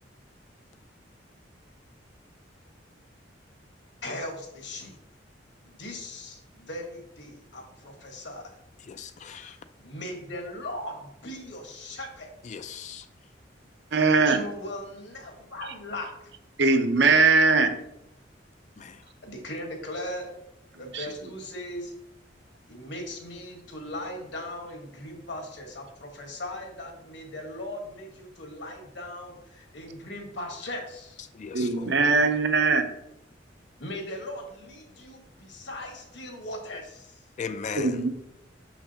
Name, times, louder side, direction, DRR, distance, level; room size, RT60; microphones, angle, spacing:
voice 1, 4.0-4.9 5.6-8.5 9.2-12.3 14.1-16.3 19.2-20.3 20.8-21.9 22.7-31.2 33.8-37.2, left 1 dB, 65° left, 1.4 m, -39 dB
voice 2, 8.9-9.6 12.4-13.1 18.8-19.0 31.3-31.9 37.4-38.0, left 6 dB, 40° left, 0.3 m, -38 dB
voice 3, 13.9-14.4 16.6-17.8 20.9-21.1 31.5-32.9 37.7-38.1, right 4 dB, 65° right, 0.7 m, -21 dB
6.4 x 6.0 x 2.8 m
head